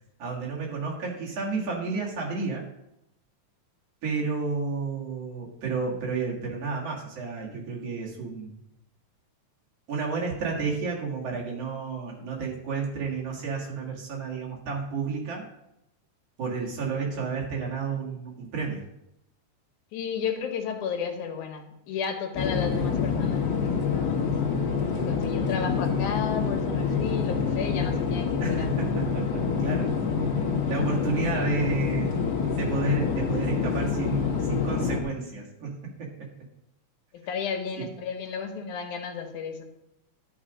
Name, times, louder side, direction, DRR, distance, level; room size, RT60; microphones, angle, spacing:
voice 1, 0.2-2.6 4.0-8.6 9.9-15.4 16.4-18.8 28.4-30.0 30.7-32.1 32.5-36.3 37.8-37.9, right 4 dB, 55° right, -3 dB, 2.8 m, -31 dB
voice 2, 19.9-24.3 25.0-28.7 31.3-31.5 37.3-39.6, left 6 dB, 85° left, 5 dB, 2.5 m, -33 dB
sound 1, 22.3-35.0, left 5 dB, 55° left, 1.2 m, -26 dB
11.5 x 4.9 x 5.0 m, 0.82 s
omnidirectional pair, 3.4 m